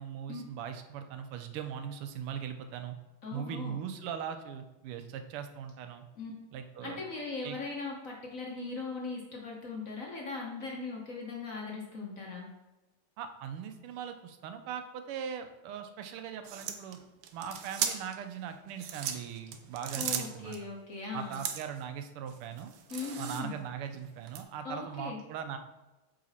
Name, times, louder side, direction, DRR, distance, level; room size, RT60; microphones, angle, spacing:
voice 1, 0.0-2.9 3.3-6.0 6.5-7.0 7.4-7.6 13.2-17.0 17.3-20.6 21.1-22.7 23.2-25.6, right 8 dB, 90° right, 8 dB, 1.6 m, -40 dB
voice 2, 3.2-3.8 6.2-6.3 6.8-12.5 20.0-21.4 22.9-23.6 24.6-25.2, left 4 dB, 50° left, -1 dB, 1.2 m, -39 dB
sound 1, 16.4-18.2 18.7-20.6 21.3-21.8 22.3-23.7 24.3-24.4, right 8 dB, 70° right, 1.1 m, -37 dB
7.6 x 4.0 x 4.1 m, 1.1 s
omnidirectional pair, 2.4 m